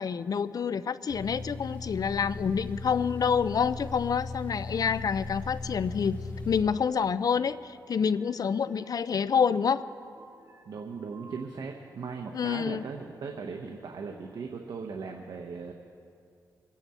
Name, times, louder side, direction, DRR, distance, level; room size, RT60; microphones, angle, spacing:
voice 1, 0.0-6.2 6.4-9.8 12.3-12.8, left 6 dB, 60° left, 15 dB, 0.5 m, -27 dB
sound 1, 1.1-6.6, left 3 dB, 20° left, 2.6 m, -38 dB
sound 2, 5.7-6.1 6.6-11.5, right 3 dB, 45° right, 2.7 m, -56 dB
voice 2, 10.7-15.7, right 5 dB, 75° right, 2 dB, 1.0 m, -38 dB
24.0 x 10.0 x 4.3 m, 2.4 s
cardioid pair, 75°, 7 cm